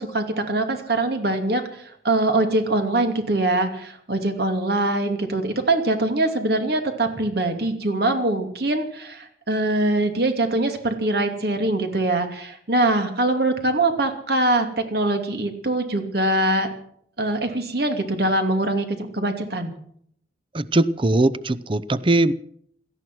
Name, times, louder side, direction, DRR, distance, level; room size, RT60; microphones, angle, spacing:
voice 1, 0.0-16.7 17.2-18.8 19.1-19.7, right 2 dB, 60° right, 6 dB, 2.7 m, -23 dB
voice 2, 20.5-22.3, right 2 dB, 30° right, 16 dB, 0.6 m, -20 dB
18.0 x 13.0 x 6.2 m, 0.66 s
head